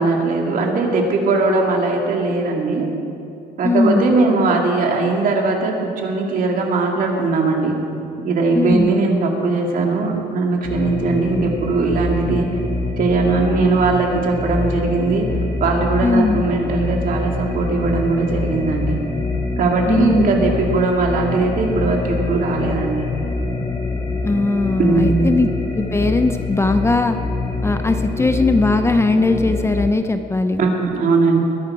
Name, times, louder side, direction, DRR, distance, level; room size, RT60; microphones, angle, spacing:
voice 1, 0.0-2.9 3.6-7.8 8.2-12.5 13.0-15.2 15.6-19.0 19.6-23.1 24.8-25.3 30.6-31.4, right 3 dB, 55° right, 1 dB, 2.5 m, -19 dB
voice 2, 3.6-4.2 8.5-9.0 16.0-16.4 19.9-20.3 24.2-25.5 25.7-27.2 27.6-30.6, left 3 dB, 15° left, 8 dB, 0.6 m, -19 dB
sound 1, 10.6-29.9, left 3 dB, 35° left, 2.6 m, -25 dB
21.0 x 11.0 x 4.9 m, 2.7 s
cardioid pair, 110°, 17 cm